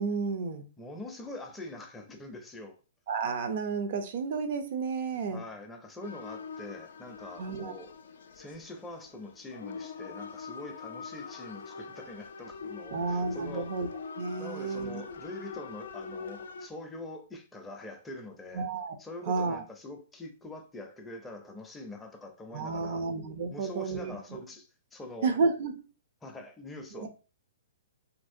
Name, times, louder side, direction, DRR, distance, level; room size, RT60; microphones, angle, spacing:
voice 1, 0.0-0.6 3.1-5.4 7.4-7.7 12.9-13.9 14.2-15.0 18.5-19.0 19.3-19.6 22.5-24.4 25.2-25.7 26.9-27.1, right 4 dB, 55° right, 0.5 m, -31 dB
voice 2, 0.8-2.8 5.3-7.9 8.3-13.7 14.4-18.7 19.0-23.0 23.5-25.3 26.2-27.1, left 2 dB, 10° left, 0.5 m, -44 dB
sound 1, 6.0-16.7, left 5 dB, 75° left, 0.4 m, -43 dB
3.0 x 2.6 x 2.5 m
hypercardioid pair, 140°, 0 cm